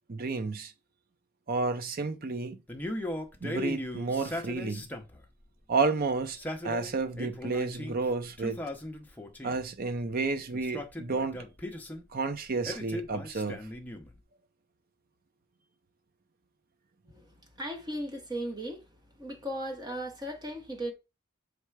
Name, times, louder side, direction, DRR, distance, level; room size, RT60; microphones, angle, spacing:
voice 1, 0.1-0.7 1.5-2.6 3.4-4.9 5.7-6.4 6.6-8.6 9.4-11.4 12.1-13.6, right 3 dB, 45° right, 0.6 m, -31 dB
Male speech man speaking, 2.7-5.2 6.2-8.0 8.4-9.7 10.5-12.0 12.6-14.2, left 1 dB, 10° left, 0.7 m, -38 dB
voice 2, 17.6-18.8 19.2-20.9, right 1 dB, 20° right, 1.1 m, -36 dB
6.7 x 3.3 x 4.7 m
head